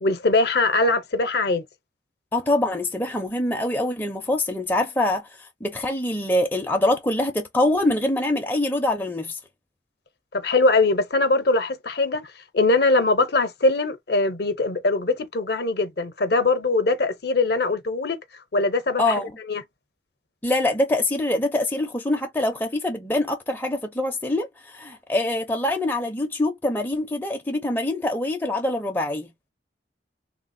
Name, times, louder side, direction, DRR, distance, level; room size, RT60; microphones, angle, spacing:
voice 1, 0.0-1.6 10.3-12.2 12.5-18.2 18.5-19.2 19.5-19.6, left 3 dB, 55° left, 0.6 m, -21 dB
voice 2, 2.3-9.4 19.0-19.3 20.4-29.3, left 1 dB, 10° left, 0.4 m, -24 dB
3.2 x 2.4 x 2.5 m
head